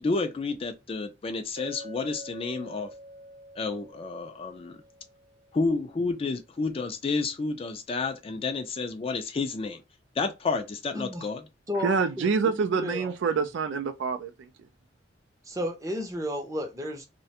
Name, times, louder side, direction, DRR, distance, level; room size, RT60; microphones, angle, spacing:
voice 1, 0.0-2.9 3.6-4.8 5.5-9.8 10.2-11.4, left 3 dB, 30° left, 0.3 m, -30 dB
Chink clink, 1.6-5.8, equal, 85° right, 0.8 m, -47 dB
voice 2, 10.9-11.3 11.7-13.1 13.4-13.5 15.5-17.1, equal, 15° right, 0.6 m, -33 dB
voice 3, 11.8-14.5, right 5 dB, 70° right, 0.4 m, -26 dB
2.4 x 2.1 x 2.7 m
head